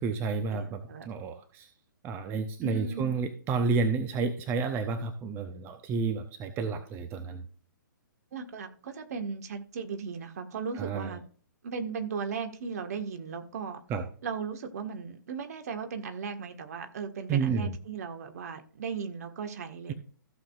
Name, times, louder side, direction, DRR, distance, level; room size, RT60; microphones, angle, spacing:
voice 1, 0.0-1.7 2.0-7.5 10.7-11.2 13.9-14.0 17.3-17.7, right 4 dB, 20° right, 0.8 m, -30 dB
voice 2, 0.5-1.1 2.6-3.1 8.3-11.2 11.6-13.8 14.2-19.9, right 5 dB, 50° right, 1.6 m, -37 dB
15.5 x 7.0 x 2.5 m
figure-of-eight pair, 125°, 11 cm